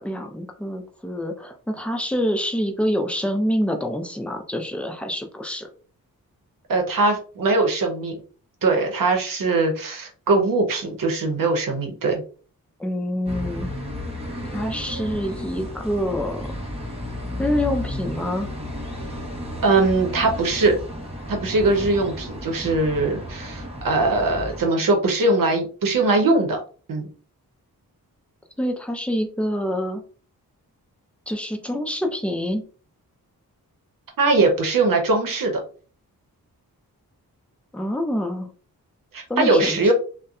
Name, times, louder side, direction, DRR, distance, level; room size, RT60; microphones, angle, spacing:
voice 1, 0.0-5.7 12.8-13.7 14.5-16.5 17.4-18.5 28.6-30.0 31.3-32.6 37.7-38.5 39.3-39.9, equal, 5° left, 3 dB, 0.5 m, -26 dB
voice 2, 6.7-8.2 8.6-12.2 19.6-20.8 21.3-26.6 26.9-27.1 34.2-35.6 39.1-39.9, right 3 dB, 60° right, 3 dB, 0.8 m, -21 dB
sound 1, 13.2-24.6, equal, 15° right, 1.0 m, -33 dB
2.7 x 2.1 x 2.3 m, 0.40 s
cardioid pair, 55°, 37 cm